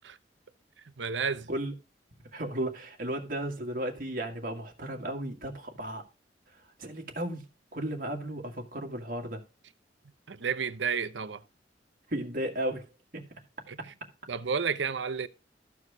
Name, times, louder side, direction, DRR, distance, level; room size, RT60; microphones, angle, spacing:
voice 1, 0.8-1.5 10.3-11.4 13.7-13.8 14.3-15.3, right 6 dB, 85° right, 0.7 m, -31 dB
voice 2, 2.3-6.0 6.8-7.5 7.7-9.4 12.1-12.9 13.1-13.2 13.8-13.9, right 1 dB, 50° right, 2.0 m, -34 dB
13.5 x 4.7 x 4.8 m
head